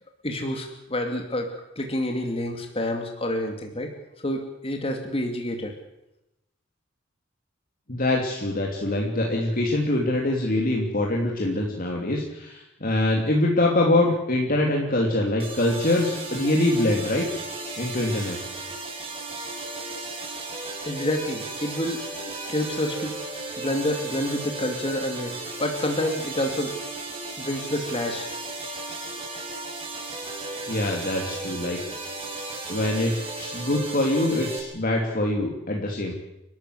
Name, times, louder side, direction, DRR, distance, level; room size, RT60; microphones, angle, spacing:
voice 1, 0.2-1.5 1.8-3.9 4.2-5.7 20.8-22.0 22.5-23.2 23.6-26.7 27.4-28.5, left 1 dB, 30° left, 3 dB, 2.5 m, -28 dB
voice 2, 7.9-17.3 17.8-18.4 30.7-31.8 32.7-36.1, left 1 dB, 45° left, -1 dB, 3.1 m, -24 dB
sound 1, 15.4-34.6, right 2 dB, 30° right, 6.3 m, -35 dB
30.0 x 13.5 x 8.2 m, 0.89 s
head